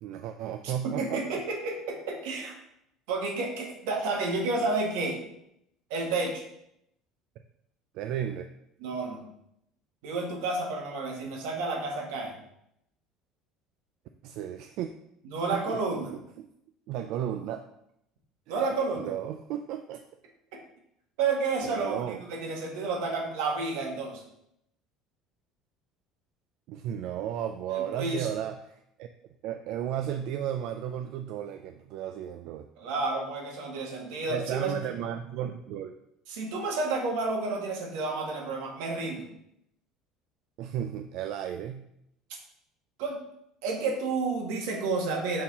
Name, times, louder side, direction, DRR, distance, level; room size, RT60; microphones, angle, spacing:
voice 1, 0.0-1.4 7.9-8.5 14.2-14.9 15.5-16.1 16.4-16.5 16.9-17.6 18.5-18.7 19.0-20.0 21.6-22.2 26.7-29.1 29.4-32.7 34.3-35.9 40.6-41.9, right 10 dB, 65° right, 7 dB, 0.3 m, -34 dB
voice 2, 0.6-2.5 3.1-5.2 5.9-6.4 8.8-9.2 10.0-12.4 15.2-16.1 18.5-19.1 21.2-24.2 27.7-28.3 32.8-34.7 36.3-39.2 43.0-43.2 43.6-45.4, right 3 dB, 85° right, 1 dB, 1.5 m, -30 dB
5.5 x 4.6 x 4.1 m, 0.78 s
cardioid pair, 135°, 0 cm